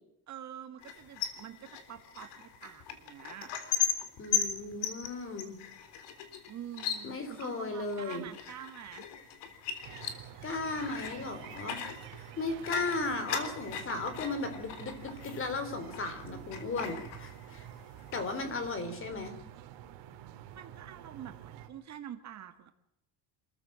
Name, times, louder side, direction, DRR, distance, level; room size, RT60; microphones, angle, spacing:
voice 1, 0.3-3.5 4.7-4.8 6.5-9.1 12.6-13.0 18.4-19.0 20.5-22.7, right 10 dB, 35° right, 7 dB, 1.7 m, -47 dB
sound 1, 0.8-16.2 16.5-17.7 18.0-18.7, left 8 dB, 60° left, 3.7 m, -38 dB
voice 2, 4.2-5.6 7.0-8.3 10.4-11.8 12.4-17.7 18.1-19.3, left 3 dB, 25° left, 9 dB, 3.9 m, -36 dB
sound 2, 9.8-21.7, right 11 dB, 60° right, 3.2 m, -49 dB
27.0 x 14.5 x 7.5 m, 0.80 s
cardioid pair, 150°, 47 cm